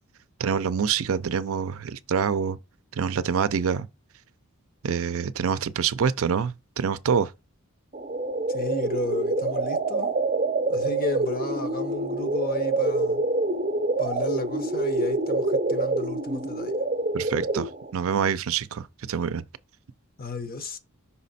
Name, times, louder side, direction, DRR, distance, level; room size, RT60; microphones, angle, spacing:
voice 1, 0.4-2.6 2.9-3.9 4.8-7.3 17.1-19.4, right 6 dB, 65° right, 0.4 m, -26 dB
sound 1, 7.9-17.9, right 2 dB, 30° right, 0.7 m, -26 dB
voice 2, 8.5-10.1 10.7-13.2 14.0-16.8 20.2-20.8, left 3 dB, 40° left, 0.8 m, -33 dB
5.6 x 4.1 x 4.1 m
head